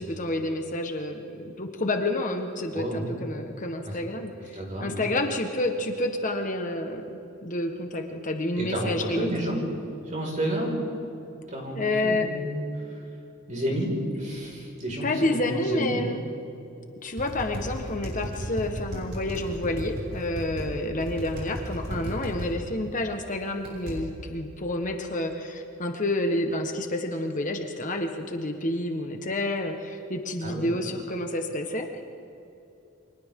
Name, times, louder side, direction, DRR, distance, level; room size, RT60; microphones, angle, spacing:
voice 1, 0.0-9.3 11.7-12.3 15.0-16.2 17.0-32.0, left 1 dB, 40° left, 4 dB, 1.3 m, -29 dB
voice 2, 2.7-3.2 3.8-4.0 4.5-5.0 8.6-9.6 10.1-10.8 11.5-12.6 13.5-16.0 30.4-30.7, right 1 dB, 35° right, -2 dB, 5.3 m, -30 dB
sound 1, 17.2-20.7 21.0-22.5 23.6-24.0, equal, 55° right, 6.4 m, -34 dB
29.5 x 25.0 x 3.8 m, 2.8 s
head